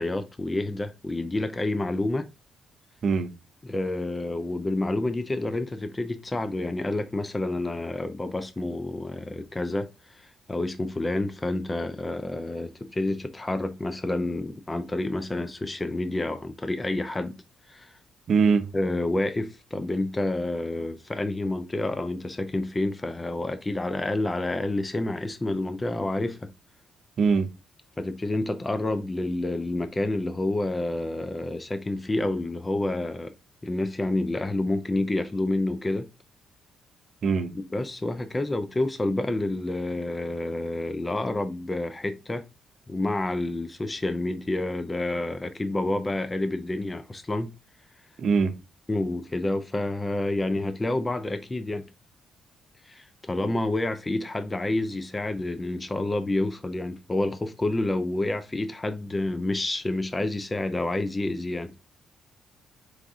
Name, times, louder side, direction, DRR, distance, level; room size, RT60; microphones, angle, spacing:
voice 1, 0.0-2.3 3.6-17.3 17.7-17.9 18.7-26.5 28.0-33.3 33.6-36.1 37.7-42.4 42.9-47.5 48.9-51.8 52.9-61.7, left 2 dB, 20° left, 0.5 m, -29 dB
voice 2, 18.3-18.6 27.2-27.5 37.2-37.5 48.2-48.5, right 5 dB, 55° right, 0.7 m, -22 dB
4.8 x 2.6 x 3.6 m
cardioid pair, 90°, 0 cm